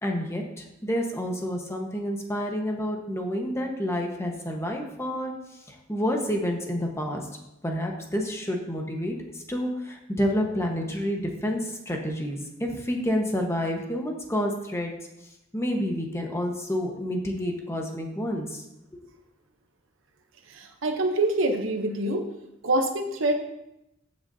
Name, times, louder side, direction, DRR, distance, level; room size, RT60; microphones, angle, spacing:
voice 1, 0.0-5.3 5.7-7.3 7.6-14.9 15.5-18.6, equal, 15° left, 1 dB, 1.2 m, -29 dB
voice 2, 20.5-22.3 22.6-23.3, right 2 dB, 70° right, 4 dB, 0.9 m, -25 dB
14.5 x 6.4 x 2.8 m, 0.89 s
head